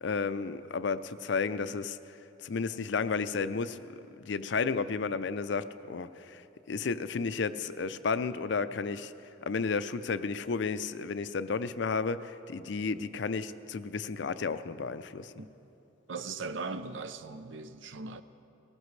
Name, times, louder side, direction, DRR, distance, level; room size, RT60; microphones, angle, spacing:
voice 1, 0.0-2.0 2.4-3.8 4.2-6.4 6.7-9.1 9.4-15.3, left 4 dB, 65° left, 13 dB, 0.4 m, -32 dB
voice 2, 16.1-18.2, right 4 dB, 75° right, 11 dB, 0.6 m, -39 dB
19.5 x 17.0 x 3.2 m, 3.0 s
head